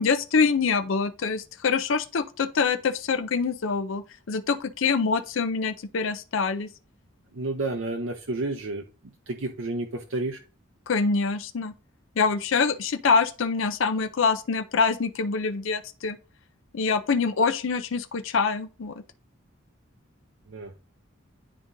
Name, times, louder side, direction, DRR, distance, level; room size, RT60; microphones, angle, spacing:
voice 1, 0.0-6.7 10.9-11.7 12.2-16.2 16.7-18.9, left 5 dB, 70° left, 0.5 m, -25 dB
voice 2, 7.3-8.8 9.3-10.4 20.5-20.7, right 2 dB, 70° right, 0.7 m, -30 dB
11.0 x 3.7 x 2.7 m
head